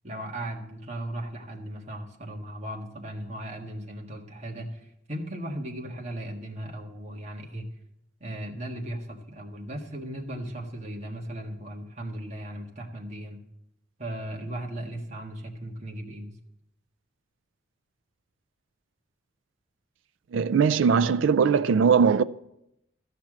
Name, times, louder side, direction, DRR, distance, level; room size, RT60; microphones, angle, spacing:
voice 1, 0.0-7.7 8.2-13.4 14.0-16.4, right 1 dB, 35° right, 1.7 m, -37 dB
voice 2, 20.3-22.2, right 6 dB, 80° right, 0.4 m, -20 dB
13.5 x 5.9 x 7.5 m
head